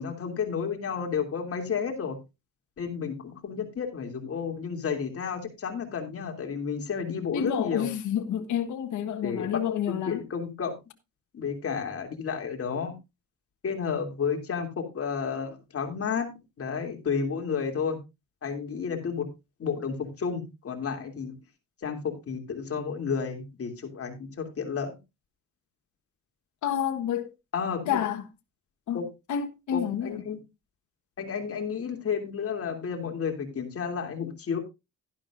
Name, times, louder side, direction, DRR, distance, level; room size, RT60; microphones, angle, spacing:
voice 1, 0.0-2.2 2.8-7.9 9.2-9.6 9.9-10.7 11.3-12.9 13.6-16.3 16.6-18.0 18.4-19.3 19.6-21.4 21.8-25.0 27.5-28.0 28.9-29.0 29.7-30.4 31.2-34.6, left 6 dB, 50° left, 3.0 m, -31 dB
voice 2, 7.3-10.2 26.6-27.3 27.9-28.2 28.9-29.0 29.3-30.2, left 9 dB, 75° left, 1.5 m, -29 dB
12.0 x 11.5 x 2.6 m
cardioid pair, 90°, 30 cm